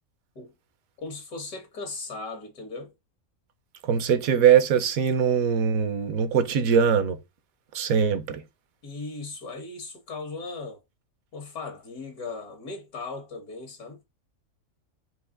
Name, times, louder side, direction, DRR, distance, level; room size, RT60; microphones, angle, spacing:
voice 1, 1.0-2.9 8.8-10.8 11.3-14.0, left 3 dB, 80° left, 1.7 m, -37 dB
voice 2, 3.8-7.2 7.7-8.4, right 7 dB, 70° right, 1.1 m, -22 dB
4.7 x 2.8 x 3.6 m
omnidirectional pair, 1.6 m